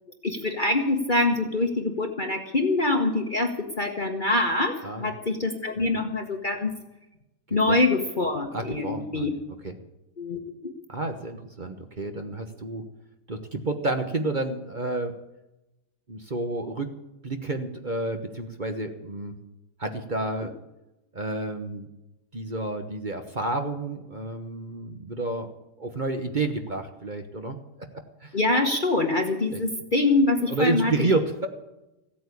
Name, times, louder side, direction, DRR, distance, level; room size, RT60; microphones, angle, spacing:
voice 1, 0.2-6.7 7.5-9.3 10.2-10.7 28.3-31.1, left 2 dB, 35° left, 4 dB, 1.1 m, -25 dB
voice 2, 8.5-9.3 9.6-9.8 10.9-12.8 13.3-15.1 16.1-16.9 17.2-19.3 19.8-20.5 21.1-21.9 22.3-25.5 25.8-27.6 28.2-28.4 29.5-29.6 30.5-31.5, right 2 dB, 30° right, 6 dB, 1.1 m, -30 dB
16.0 x 8.6 x 8.4 m, 0.95 s
omnidirectional pair, 1.8 m